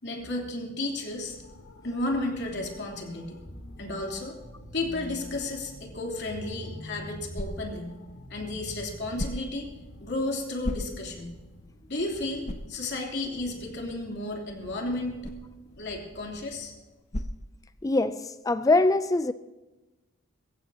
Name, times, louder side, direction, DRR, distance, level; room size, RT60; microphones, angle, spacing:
voice 1, 0.0-1.4 1.8-3.4 3.8-4.4 4.7-8.0 8.3-9.7 10.0-11.3 11.9-15.2 15.8-16.7, left 2 dB, 50° left, 3.2 m, -33 dB
sound 1, 1.0-17.0, left 1 dB, 70° left, 1.4 m, -51 dB
sound 2, 3.4-9.2, equal, 10° right, 6.1 m, -44 dB
sound 3, 6.5-18.2, left 1 dB, 35° left, 0.9 m, -41 dB
voice 2, 17.8-19.3, left 2 dB, 15° left, 0.4 m, -23 dB
23.5 x 15.0 x 2.8 m
head